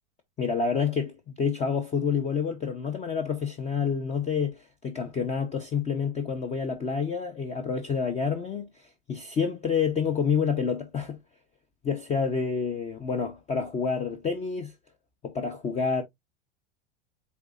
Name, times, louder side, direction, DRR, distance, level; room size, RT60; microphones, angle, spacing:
voice 1, 0.4-11.2 11.8-14.7 15.2-16.0, left 6 dB, 20° left, 0.6 m, -28 dB
8.0 x 2.7 x 2.4 m
supercardioid pair, 125°, 33 cm